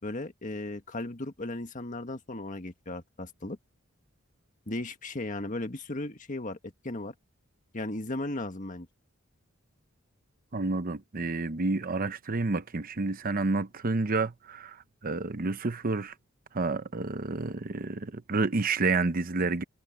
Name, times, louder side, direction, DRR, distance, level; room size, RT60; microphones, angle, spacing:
voice 1, 0.0-3.6 4.7-7.1 7.7-8.9, left 2 dB, 40° left, 1.7 m, -36 dB
voice 2, 10.5-14.8 15.0-16.1 16.5-19.6, right 3 dB, 45° right, 0.8 m, -29 dB
head